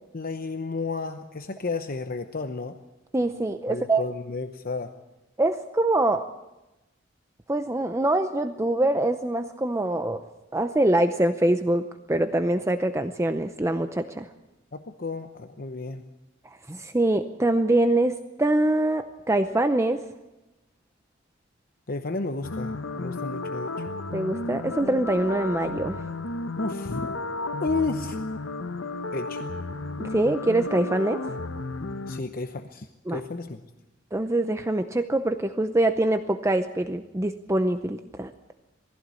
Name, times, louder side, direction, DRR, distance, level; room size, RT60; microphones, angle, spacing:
voice 1, 0.1-2.7 3.7-4.9 14.7-16.0 21.9-23.9 26.6-27.2 27.6-28.2 29.1-29.4 32.1-33.6, left 3 dB, 45° left, 7 dB, 0.9 m, -32 dB
voice 2, 3.1-4.1 5.4-6.3 7.5-10.2 10.5-14.3 16.7-20.0 24.1-26.0 30.0-31.2 33.1-33.2 34.1-38.3, right 1 dB, 15° right, 8 dB, 0.6 m, -24 dB
sound 1, 22.4-32.2, left 2 dB, 75° left, 0.9 m, -33 dB
20.0 x 16.0 x 8.3 m, 0.99 s
head